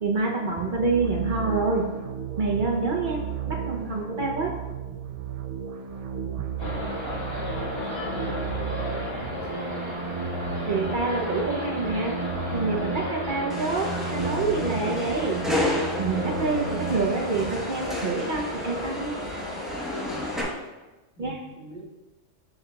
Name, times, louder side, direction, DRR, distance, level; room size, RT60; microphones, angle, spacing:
voice 1, 0.0-2.0 2.4-4.6 10.7-12.2 12.5-15.4 16.0-19.2 21.2-21.4, right 3 dB, 50° right, 0 dB, 0.8 m, -27 dB
sound 1, 0.6-17.6, right 6 dB, 65° right, 0.3 m, -33 dB
sound 2, 6.6-20.5, left 2 dB, 20° left, 1.7 m, -34 dB
voice 2, 7.7-9.2 21.2-21.9, right 2 dB, 75° left, -4 dB, 1.9 m, -45 dB
sound 3, 13.5-20.4, left 1 dB, ahead, 0.9 m, -33 dB
8.4 x 6.8 x 2.3 m, 1.1 s
omnidirectional pair, 1.3 m